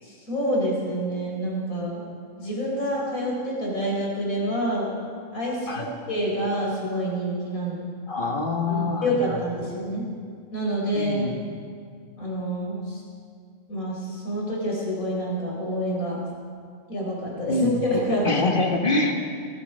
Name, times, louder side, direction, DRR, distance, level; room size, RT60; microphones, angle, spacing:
voice 1, 0.0-2.0 2.4-5.0 5.3-7.8 8.7-10.0 10.5-11.4 12.2-13.0 13.7-16.2 16.9-18.4, equal, 85° left, -3 dB, 4.8 m, -27 dB
voice 2, 8.1-9.4 10.9-11.3 17.5-19.1, left 2 dB, 40° left, 2 dB, 1.5 m, -25 dB
18.0 x 14.0 x 5.4 m, 2.1 s
omnidirectional pair, 1.4 m